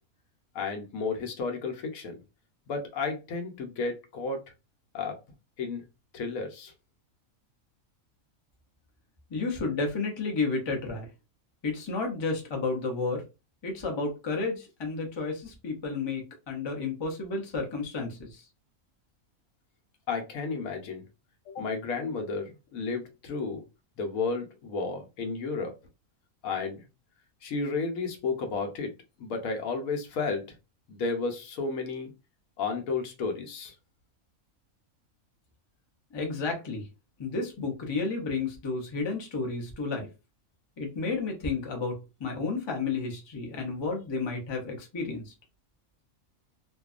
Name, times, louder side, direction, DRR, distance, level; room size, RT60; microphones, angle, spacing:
voice 1, 0.5-2.2 2.7-4.4 4.9-5.2 5.6-5.8 6.1-6.7 20.1-21.0 21.5-23.6 24.0-25.7 26.4-26.8 27.4-28.9 29.2-30.4 30.9-32.1 32.6-33.7, left 4 dB, 80° left, 4 dB, 1.1 m, -32 dB
voice 2, 9.3-11.1 11.6-13.2 13.6-18.3 36.1-36.8 37.2-40.1 40.8-45.3, left 3 dB, 35° left, 1 dB, 0.4 m, -31 dB
2.6 x 2.2 x 2.3 m, 0.28 s
omnidirectional pair, 1.4 m